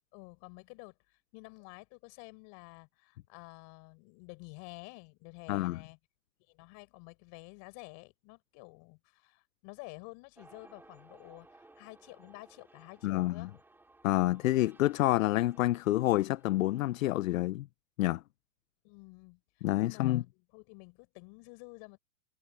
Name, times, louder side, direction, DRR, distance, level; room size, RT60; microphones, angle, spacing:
voice 1, 0.0-6.0 6.5-13.5 18.8-22.0, left 31 dB, 40° left, 5.1 m, -51 dB
voice 2, 5.5-5.8 13.0-13.5 14.0-17.7 18.0-18.2 19.6-20.2, left 16 dB, 55° left, 0.8 m, -28 dB
sound 1, 10.3-17.5, right 2 dB, 5° right, 2.7 m, -60 dB
hypercardioid pair, 135°, 47 cm